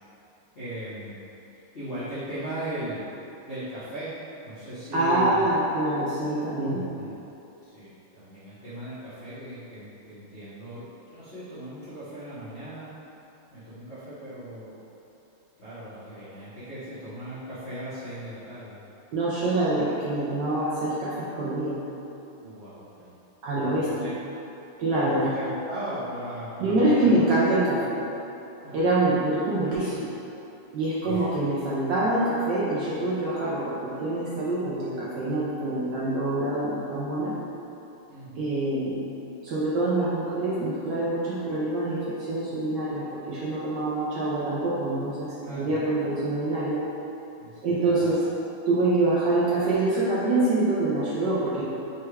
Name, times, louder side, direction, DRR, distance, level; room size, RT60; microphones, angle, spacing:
voice 1, 0.5-3.1 3.4-4.1 4.4-5.5 6.7-7.2 7.6-12.9 13.5-14.8 15.6-18.8 22.4-23.1 23.5-24.1 24.9-27.3 28.6-29.0 31.0-31.3 38.1-38.5 45.4-45.8 47.4-48.3, right 1 dB, 75° left, -13 dB, 0.5 m, -38 dB
voice 2, 4.9-6.8 19.1-21.8 23.4-24.1 24.8-25.3 26.6-28.0 28.7-30.1 30.7-37.3 38.4-46.8 47.6-48.2 48.7-51.6, right 2 dB, 75° right, -8 dB, 1.0 m, -25 dB
5.5 x 2.3 x 3.2 m, 3.0 s
omnidirectional pair, 2.4 m